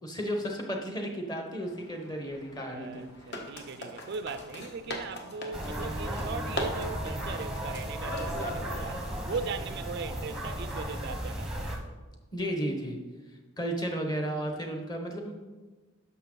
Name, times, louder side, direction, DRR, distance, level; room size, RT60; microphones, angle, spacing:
voice 1, 0.0-3.0 12.3-13.0 13.6-15.4, equal, 20° left, 1.1 m, -33 dB
sound 1, 1.6-9.5, left 1 dB, 50° left, 1.3 m, -41 dB
voice 2, 2.6-12.0, right 4 dB, 50° right, 0.3 m, -39 dB
sound 2, 5.5-11.8, right 1 dB, 5° right, 0.9 m, -35 dB
11.5 x 6.1 x 3.9 m
head